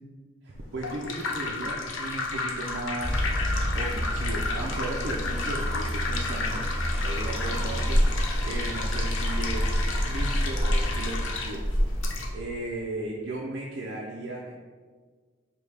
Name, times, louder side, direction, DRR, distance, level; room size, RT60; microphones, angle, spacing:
voice 1, 0.4-3.3 3.7-6.6 7.0-8.0 8.4-9.8 10.1-11.6 12.3-14.5, right 2 dB, 55° right, -2 dB, 0.4 m, -36 dB
sound 1, 0.5-12.3, left 3 dB, 70° left, 0.6 m, -33 dB
sound 2, 3.0-12.3, equal, 15° right, 0.7 m, -28 dB
3.3 x 2.7 x 4.6 m, 1.5 s
head